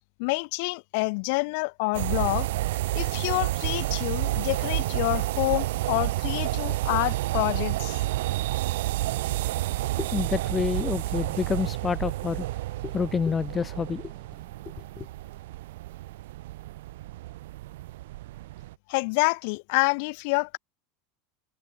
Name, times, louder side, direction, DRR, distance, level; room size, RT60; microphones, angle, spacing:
voice 1, 0.2-2.5 2.9-8.0 18.9-20.6, left 31 dB, 50° left, 2.7 m, -27 dB
sound 1, 1.9-18.7, right 17 dB, 80° right, 6.8 m, -30 dB
voice 2, 10.0-12.5 12.8-14.1 15.0-15.1, left 6 dB, 15° left, 0.8 m, -28 dB
supercardioid pair, 180°, 0 cm